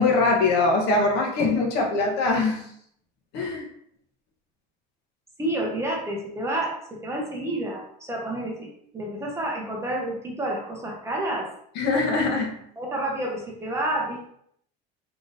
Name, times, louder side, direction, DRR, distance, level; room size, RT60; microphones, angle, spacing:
voice 1, 0.0-2.6 3.3-3.6 11.7-12.5, left 3 dB, 55° left, 0 dB, 1.1 m, -22 dB
voice 2, 5.4-6.7 7.0-8.7 8.9-11.4 12.8-14.3, right 1 dB, 15° right, -2 dB, 0.7 m, -29 dB
3.7 x 3.5 x 2.6 m, 0.69 s
cardioid pair, 155°, 21 cm